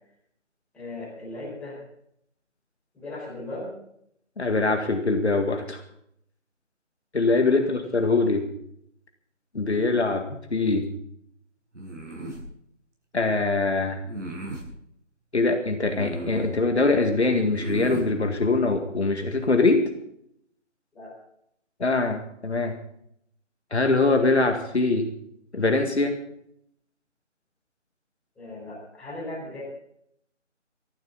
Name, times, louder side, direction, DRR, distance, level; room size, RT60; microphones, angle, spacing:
voice 1, 0.7-1.8 2.9-3.7 7.5-7.8 20.9-21.1 28.3-29.6, left 1 dB, 5° left, -10 dB, 4.9 m, -37 dB
voice 2, 4.4-5.8 7.1-8.5 9.5-10.9 13.1-14.0 15.3-19.9 21.8-22.8 23.7-25.1 25.5-26.2, left 3 dB, 60° left, 5 dB, 2.1 m, -23 dB
sound 1, 11.7-12.4 14.0-14.7 15.8-16.6 17.5-18.1, right 1 dB, 75° right, 7.4 m, -35 dB
19.5 x 14.0 x 4.1 m, 0.72 s
figure-of-eight pair, 160°, 37 cm